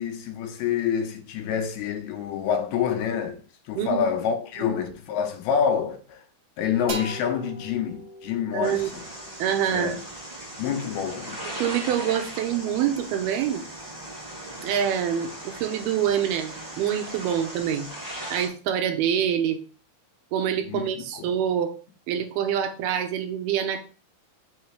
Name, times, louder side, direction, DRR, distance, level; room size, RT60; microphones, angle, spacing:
voice 1, 0.0-6.2 6.6-9.0 9.7-10.0 10.6-11.4 20.6-21.3, left 7 dB, 85° left, 2.7 m, -27 dB
voice 2, 3.8-4.1 8.5-8.9 9.4-10.0 11.6-13.6 14.6-17.9 18.3-19.6 20.3-21.7 22.1-23.8, right 9 dB, 85° right, 2.7 m, -26 dB
sound 1, 6.9-10.5, right 2 dB, 60° right, 2.0 m, -40 dB
sound 2, 8.6-18.5, right 1 dB, 10° right, 1.3 m, -38 dB
6.5 x 3.2 x 4.7 m
omnidirectional pair, 4.5 m